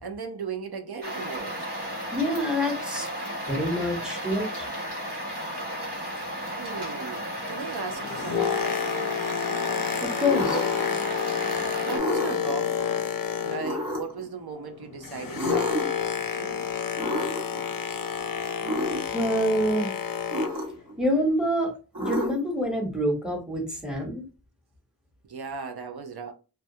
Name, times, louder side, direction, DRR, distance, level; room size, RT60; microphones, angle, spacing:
voice 1, 0.0-1.6 6.6-9.2 11.8-13.1 13.4-16.9 25.2-26.3, right 5 dB, 70° right, 0.5 m, -37 dB
sound 1, 1.0-12.0, equal, 90° right, 0.9 m, -34 dB
voice 2, 2.1-3.1 3.5-4.7 10.0-10.6 19.1-19.9 21.0-24.2, equal, ahead, 0.9 m, -26 dB
Boat Water vehicle, 7.8-14.0 14.2-20.7 21.3-21.5, left 7 dB, 60° left, 0.5 m, -29 dB
sound 2, 10.2-10.9 11.9-12.5 13.6-14.2 15.3-16.0 17.0-17.6 18.6-19.0 20.3-20.9 21.9-22.6, equal, 55° right, 1.1 m, -30 dB
2.2 x 2.2 x 2.6 m
wide cardioid pair, 45°, 39 cm